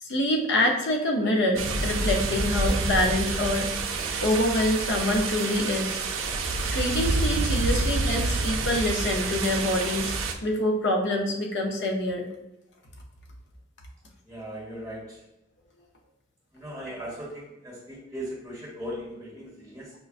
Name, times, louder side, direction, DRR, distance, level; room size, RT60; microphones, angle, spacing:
voice 1, 0.0-3.7 4.2-6.0 6.7-10.1 10.4-12.3, left 1 dB, 65° left, 1 dB, 0.7 m, -25 dB
sound 1, 1.6-10.3, right 3 dB, 75° right, 0.4 m, -28 dB
voice 2, 14.2-15.2 16.5-19.9, equal, 5° right, -9 dB, 1.1 m, -38 dB
5.1 x 2.2 x 2.5 m, 0.94 s
head